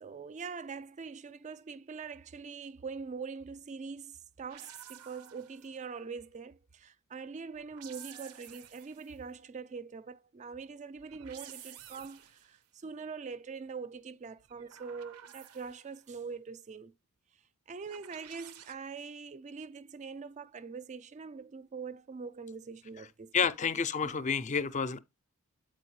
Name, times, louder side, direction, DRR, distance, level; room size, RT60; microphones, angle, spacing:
voice 1, 0.0-16.9 17.7-23.3 23.6-23.7 24.0-24.1, right 5 dB, 30° right, 0.4 m, -43 dB
sound 1, 4.5-5.8 7.5-9.2 11.0-12.6 14.4-16.0 17.9-18.7, right 10 dB, 75° right, 0.6 m, -51 dB
voice 2, 23.3-25.0, left 6 dB, 35° left, 0.4 m, -29 dB
7.7 x 4.3 x 3.1 m
head